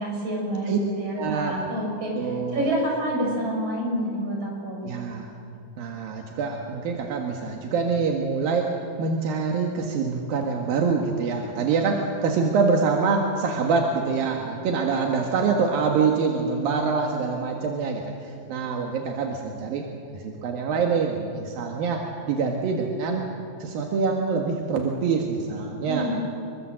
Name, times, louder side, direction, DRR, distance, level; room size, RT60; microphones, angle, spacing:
voice 1, 0.0-4.8 25.8-26.2, equal, 45° right, -2 dB, 8.4 m, -28 dB
voice 2, 1.1-1.6 2.2-2.7 4.8-5.3 5.8-8.7 9.0-19.8 20.1-22.0 22.3-23.3 23.6-26.1, right 5 dB, 80° right, 1 dB, 3.5 m, -25 dB
26.5 x 23.0 x 7.7 m, 2.8 s
omnidirectional pair, 4.1 m